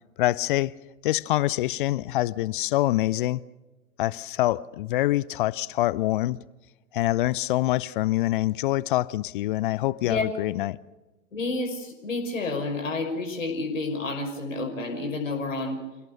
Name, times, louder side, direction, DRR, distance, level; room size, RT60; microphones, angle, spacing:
voice 1, 0.2-0.7 1.0-3.4 4.0-6.4 6.9-10.8, left 16 dB, 40° left, 0.6 m, -25 dB
voice 2, 11.3-15.8, left 3 dB, 70° left, 5.9 m, -30 dB
28.0 x 18.0 x 6.7 m
figure-of-eight pair, 100°, 40 cm